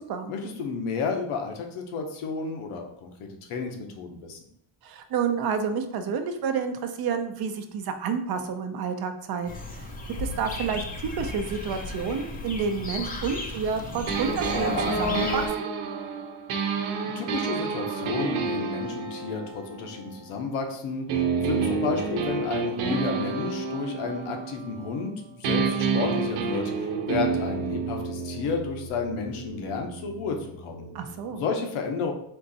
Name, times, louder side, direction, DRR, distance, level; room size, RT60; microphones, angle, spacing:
voice 1, 0.3-4.4 17.1-30.9 31.3-32.1, left 4 dB, 90° left, 3 dB, 1.0 m, -32 dB
voice 2, 4.8-9.8 10.2-10.8 11.2-15.7 30.9-31.4, right 6 dB, 50° right, 7 dB, 0.5 m, -29 dB
sound 1, 9.5-15.5, left 2 dB, 20° left, 0.4 m, -33 dB
sound 2, 14.1-20.6 21.1-25.1 25.4-31.2, right 5 dB, 85° right, 0.9 m, -30 dB
4.5 x 2.6 x 3.9 m, 0.72 s
cardioid pair, 165°, 49 cm